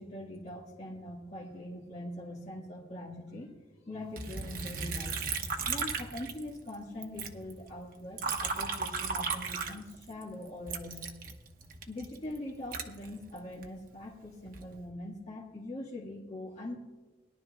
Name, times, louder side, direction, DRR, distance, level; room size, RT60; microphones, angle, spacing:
voice 1, 0.0-3.5 3.8-5.2 5.7-11.0 11.9-16.8, left 1 dB, 40° left, -5 dB, 1.6 m, -42 dB
Liquid, 4.2-6.7 7.0-10.2 10.7-13.7 14.2-14.8, right 5 dB, 55° right, 1.1 m, -36 dB
21.0 x 11.5 x 2.3 m, 1.3 s
head